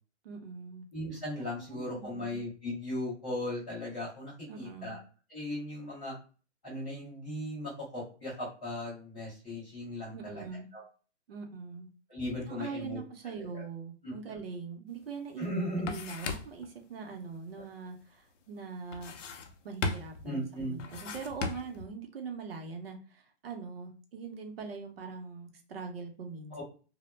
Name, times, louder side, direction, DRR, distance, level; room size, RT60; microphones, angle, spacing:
voice 1, 0.2-0.9 1.6-2.4 4.5-5.0 10.1-10.7 11.3-11.9 12.5-15.5 15.8-19.1 19.6-26.6, right 5 dB, 55° right, 4 dB, 0.6 m, -42 dB
voice 2, 0.9-5.0 5.3-6.1 6.6-10.4 10.7-10.8 12.1-13.0 13.3-13.6 14.0-14.4 15.4-15.9 20.2-20.8 26.5-26.6, left 1 dB, 5° left, -16 dB, 0.5 m, -37 dB
sound 1, 15.0-15.1 15.4-16.7 18.9-19.6 19.8-20.3 20.8-21.9, left 4 dB, 85° left, 0.6 m, -36 dB
2.1 x 2.0 x 3.1 m, 0.37 s
hypercardioid pair, 180°, 36 cm